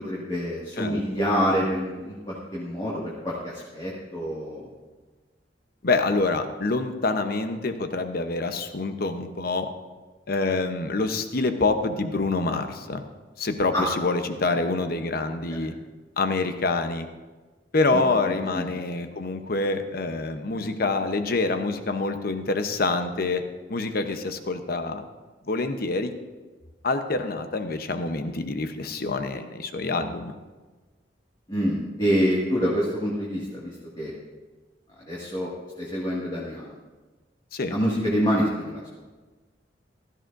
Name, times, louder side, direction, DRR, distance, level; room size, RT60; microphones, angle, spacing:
voice 1, 0.0-4.7 13.7-13.9 14.5-14.6 15.5-15.6 17.9-18.7 31.5-34.1 35.0-35.5 35.8-36.7 37.7-38.8, equal, 25° left, -6 dB, 2.0 m, -27 dB
voice 2, 5.8-9.7 10.3-13.0 13.4-15.7 16.2-17.1 17.7-23.4 23.7-25.0 25.5-26.1 26.8-30.3 37.5-37.7, left 3 dB, 60° left, 7 dB, 0.9 m, -26 dB
15.5 x 13.0 x 2.6 m, 1.3 s
head